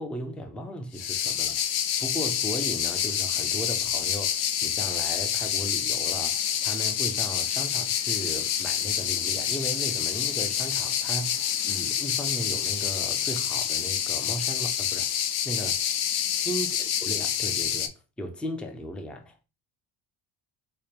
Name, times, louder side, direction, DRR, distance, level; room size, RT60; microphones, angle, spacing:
voice 1, 0.0-15.9 16.4-19.5, equal, 5° left, 0.3 m, -36 dB
sound 1, 0.9-17.9, left 9 dB, 55° left, 0.5 m, -27 dB
5.0 x 2.1 x 2.8 m
cardioid pair, 130°, 48 cm